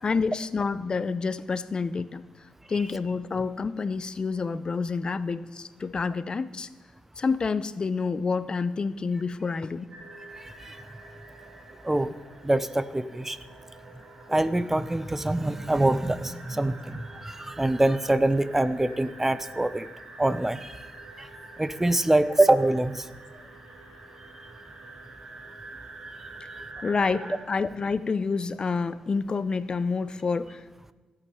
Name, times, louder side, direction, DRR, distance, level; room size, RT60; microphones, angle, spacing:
voice 1, 0.0-6.7 7.2-9.9 26.8-30.6, left 4 dB, 45° left, 15 dB, 0.5 m, -28 dB
sound 1, 9.9-27.4, right 2 dB, 65° right, 3.2 m, -46 dB
voice 2, 12.4-13.4 14.3-19.9 20.2-20.8 21.2-21.3 21.6-23.1, right 1 dB, 15° right, 14 dB, 0.6 m, -24 dB
16.0 x 8.4 x 5.5 m, 1.3 s
cardioid pair, 65°, 2 cm